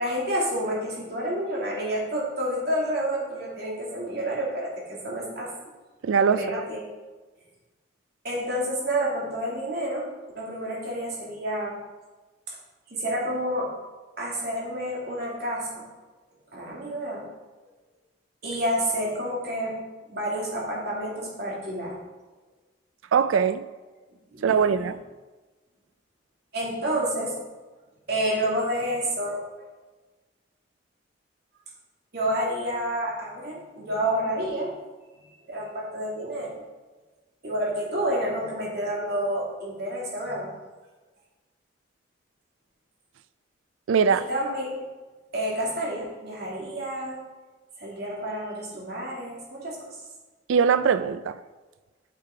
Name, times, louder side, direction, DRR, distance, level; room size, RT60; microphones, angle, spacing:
voice 1, 0.0-5.5 6.3-6.8 8.2-10.1 10.3-11.8 12.5-12.6 12.9-13.7 14.2-15.8 16.5-17.3 18.4-19.8 20.1-22.0 24.3-24.9 26.5-27.3 28.1-29.4 32.1-34.8 35.5-36.6 37.4-40.5 44.1-44.7 45.3-47.2 47.8-50.0, right 1 dB, 55° right, 2.8 m, -29 dB
voice 2, 6.0-6.6 23.1-23.6 24.4-25.0 43.9-44.3 50.5-51.4, right 6 dB, 90° right, 0.4 m, -21 dB
8.4 x 6.7 x 4.7 m
head